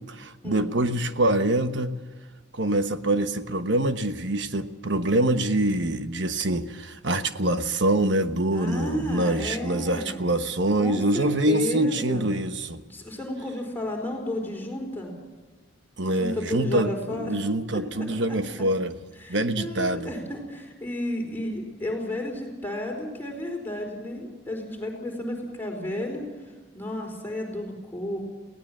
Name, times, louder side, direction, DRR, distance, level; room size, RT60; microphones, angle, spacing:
voice 1, 0.0-2.0 2.5-12.8 16.0-18.9 19.3-20.1, right 1 dB, 60° right, 9 dB, 1.2 m, -25 dB
voice 2, 8.5-10.2 10.8-12.3 12.9-15.1 16.1-17.4 18.0-18.4 19.2-26.2 26.7-28.2, left 1 dB, 10° left, 0 dB, 4.6 m, -32 dB
22.5 x 17.5 x 7.5 m, 1.3 s
head